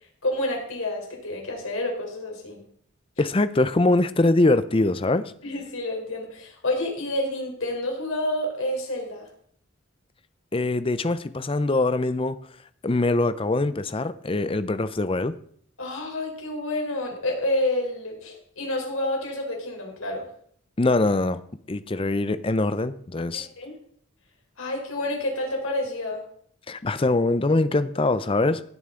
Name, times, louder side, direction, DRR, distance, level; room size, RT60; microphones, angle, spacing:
voice 1, 0.2-2.6 5.4-9.3 15.8-20.3 23.3-23.7 24.6-26.2, left 1 dB, 80° left, 1 dB, 3.8 m, -29 dB
voice 2, 3.2-5.3 10.5-12.5 12.8-15.3 20.8-21.4 21.7-23.5 26.7-28.6, left 2 dB, 25° left, 14 dB, 0.5 m, -23 dB
16.5 x 9.1 x 3.8 m, 0.63 s
head